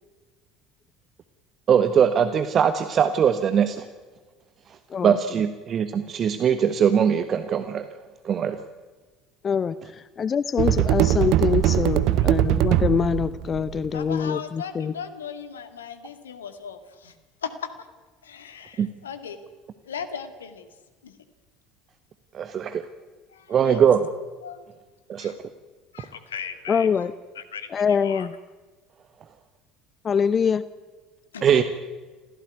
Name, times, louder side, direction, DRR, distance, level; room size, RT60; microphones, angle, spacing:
voice 1, 1.7-3.9 5.0-7.9 8.2-8.6 18.8-18.9 22.3-22.8 23.5-24.0 25.1-25.3 31.4-31.6, right 8 dB, 40° right, 11 dB, 1.3 m, -21 dB
voice 2, 9.4-9.8 10.2-14.9 26.7-27.1 27.7-28.3 30.0-30.6, left 6 dB, 30° left, 16 dB, 0.8 m, -24 dB
sound 1, 10.6-14.0, right 13 dB, 55° right, 0.8 m, -21 dB
voice 3, 12.0-12.3 13.9-17.1 17.4-17.7 18.2-19.4 19.9-20.7 21.0-21.1 22.5-22.8 23.3-23.8 24.4-24.6 25.2-25.3 25.9-27.1 27.4-28.3 31.3-31.6, left 7 dB, 75° left, 10 dB, 2.1 m, -37 dB
27.0 x 16.5 x 9.4 m, 1.3 s
figure-of-eight pair, 65°, 0 cm